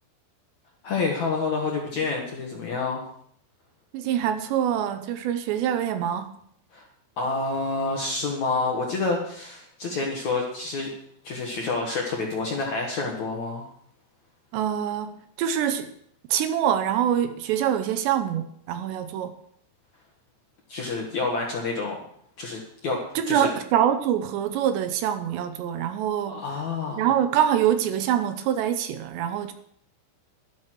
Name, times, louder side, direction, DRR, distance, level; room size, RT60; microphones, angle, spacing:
voice 1, 0.8-3.0 6.7-6.9 7.2-10.9 11.2-13.7 20.7-22.0 22.4-23.5 26.3-27.1, left 3 dB, 65° left, 0 dB, 1.9 m, -28 dB
voice 2, 3.9-6.3 14.5-15.9 16.3-19.3 23.2-26.4 27.0-29.5, right 10 dB, 80° right, 9 dB, 2.7 m, -25 dB
12.5 x 12.5 x 4.6 m, 0.65 s
omnidirectional pair, 5.6 m